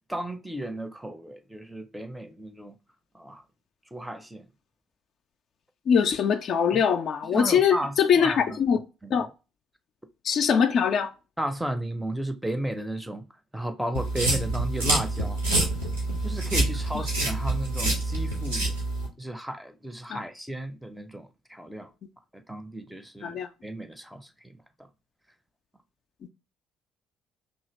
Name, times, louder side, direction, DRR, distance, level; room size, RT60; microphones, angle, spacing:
voice 1, 0.1-2.8 3.1-3.4 3.9-4.5 6.7-6.8 7.3-8.6 9.0-9.3 11.4-13.2 13.5-15.6 16.2-18.8 19.2-21.9 22.3-24.6, right 1 dB, 5° right, 0.5 m, -34 dB
voice 2, 5.9-8.8 9.1-9.3 10.2-11.1 20.1-20.2 23.2-23.5, left 7 dB, 50° left, 0.3 m, -22 dB
sound 1, 13.9-19.1, right 2 dB, 85° right, 1.0 m, -27 dB
2.8 x 2.7 x 3.0 m
figure-of-eight pair, 50°, 0 cm